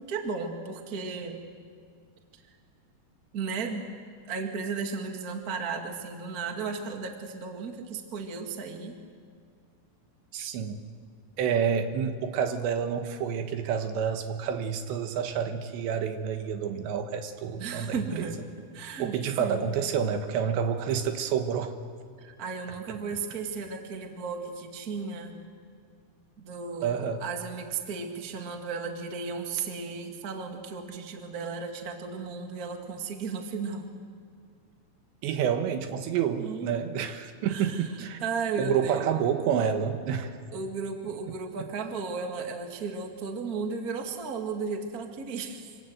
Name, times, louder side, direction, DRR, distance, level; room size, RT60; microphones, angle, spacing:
voice 1, 0.0-1.4 2.3-2.4 3.3-3.9 4.2-9.0 17.6-18.4 18.7-19.7 22.2-25.4 26.4-33.9 36.4-36.7 37.5-39.1 40.5-45.7, right 5 dB, 35° right, 3 dB, 1.6 m, -35 dB
voice 2, 10.3-10.8 11.4-18.3 19.0-21.7 26.8-27.2 35.2-38.2 38.6-40.4, right 7 dB, 85° right, 6 dB, 3.7 m, -29 dB
26.5 x 25.5 x 8.0 m, 2.2 s
omnidirectional pair, 5.0 m